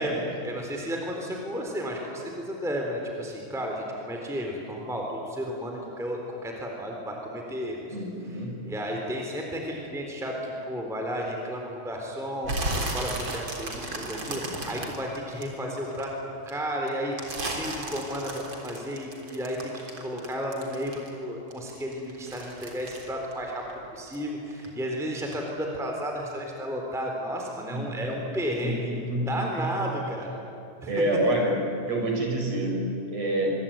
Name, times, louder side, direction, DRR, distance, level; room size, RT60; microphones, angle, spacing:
voice 1, 0.0-7.8 8.7-12.5 12.9-16.1 16.5-17.1 17.4-23.6 23.9-28.8 29.3-30.3 30.8-30.9, equal, ahead, 1 dB, 3.6 m, -33 dB
voice 2, 7.9-8.6 27.7-27.9 28.6-29.9 30.9-33.5, right 1 dB, 60° right, 1 dB, 6.7 m, -28 dB
sound 1, 12.4-16.0 16.5-21.2 21.5-24.2 24.5-24.9 25.3-25.4, right 2 dB, 40° right, 4.3 m, -34 dB
25.5 x 25.0 x 9.1 m, 2.8 s
omnidirectional pair, 3.4 m